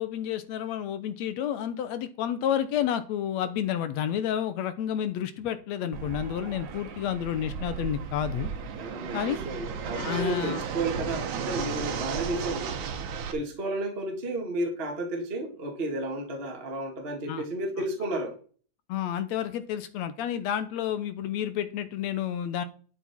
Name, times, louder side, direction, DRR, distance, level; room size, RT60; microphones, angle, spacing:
voice 1, 0.0-8.5 9.1-9.4 10.0-10.6 17.3-17.5 18.9-22.6, left 10 dB, 70° left, 12 dB, 2.0 m, -30 dB
Fixed-wing aircraft airplane, 5.9-13.3, right 7 dB, 75° right, 2.6 m, -34 dB
voice 2, 8.8-12.7 13.3-18.3, right 1 dB, 20° right, 1 dB, 2.1 m, -32 dB
12.0 x 7.1 x 4.4 m, 0.40 s
omnidirectional pair, 3.5 m